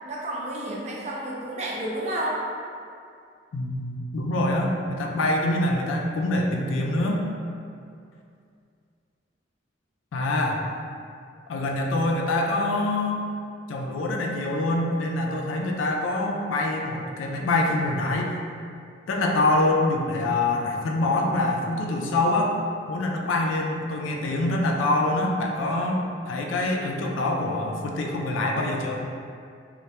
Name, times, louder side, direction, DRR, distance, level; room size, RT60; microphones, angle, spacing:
voice 1, 0.0-2.4, right 1 dB, 35° right, -5 dB, 0.5 m, -31 dB
voice 2, 3.5-7.3 10.1-10.6 11.5-13.3 13.7-18.3 19.1-22.6 22.9-29.0, left 2 dB, 90° left, 1 dB, 0.4 m, -25 dB
3.1 x 2.2 x 2.8 m, 2.4 s
head